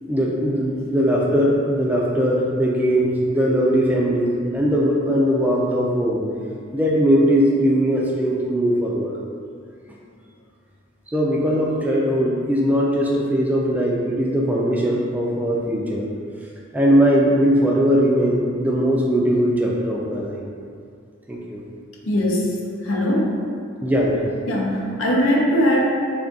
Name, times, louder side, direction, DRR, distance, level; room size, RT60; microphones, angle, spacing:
voice 1, 0.0-6.2 6.7-9.2 11.1-16.1 16.7-20.4 21.3-21.6 23.8-24.3, equal, 10° right, -3 dB, 0.3 m, -20 dB
voice 2, 22.1-22.6 22.8-23.4 24.5-25.8, equal, 75° left, -2 dB, 0.6 m, -20 dB
3.5 x 2.3 x 3.8 m, 2.3 s
head